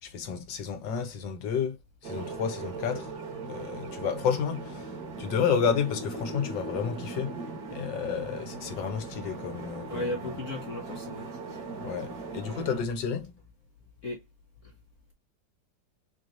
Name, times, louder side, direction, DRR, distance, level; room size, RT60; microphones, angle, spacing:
voice 1, 0.0-1.8 2.0-3.1 3.4-4.9 5.2-7.4 7.7-10.1 11.8-13.3, left 7 dB, 75° left, 1.7 m, -31 dB
sound 1, 2.0-12.8, right 3 dB, 55° right, 1.9 m, -39 dB
voice 2, 9.9-11.3 14.0-14.2 14.6-14.7, left 1 dB, 50° left, 1.2 m, -35 dB
4.5 x 3.2 x 2.6 m
omnidirectional pair, 2.0 m